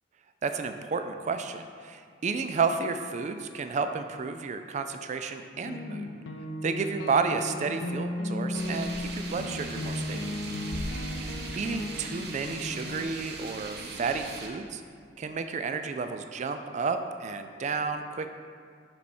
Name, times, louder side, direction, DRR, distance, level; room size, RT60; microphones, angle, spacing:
voice 1, 0.4-6.1 6.6-10.2 11.6-14.8 15.2-18.3, right 5 dB, 40° right, 8 dB, 0.4 m, -31 dB
sound 1, 5.6-13.0, left 1 dB, 85° left, 0.6 m, -35 dB
sound 2, 8.5-14.5, right 2 dB, 65° right, 0.8 m, -39 dB
7.0 x 4.7 x 4.3 m, 2.2 s
head